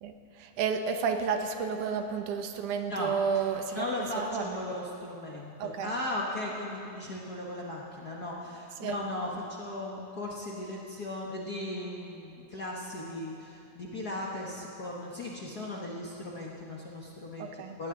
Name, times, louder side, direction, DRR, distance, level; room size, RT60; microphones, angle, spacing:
voice 1, 0.0-4.6 5.6-6.0 8.8-8.9 17.4-17.8, right 6 dB, 80° right, 6 dB, 2.4 m, -31 dB
voice 2, 2.8-3.1 3.7-17.9, left 1 dB, 55° left, -3 dB, 1.1 m, -37 dB
19.0 x 17.5 x 3.8 m, 2.8 s
omnidirectional pair, 3.6 m